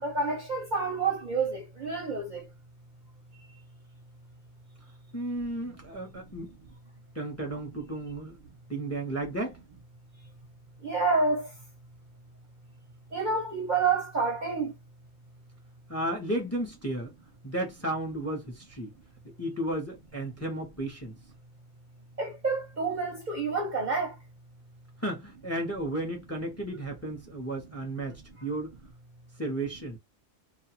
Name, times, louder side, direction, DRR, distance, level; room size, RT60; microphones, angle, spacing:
voice 1, 0.0-2.4 10.8-11.5 13.1-14.7 22.2-24.1, right 4 dB, 45° right, 0.7 m, -28 dB
voice 2, 5.1-6.5 7.1-8.4 8.7-9.6 15.9-17.1 17.4-18.9 19.4-21.1 25.0-28.7 29.4-30.0, right 1 dB, 15° left, 0.7 m, -33 dB
2.4 x 2.3 x 2.9 m
omnidirectional pair, 1.3 m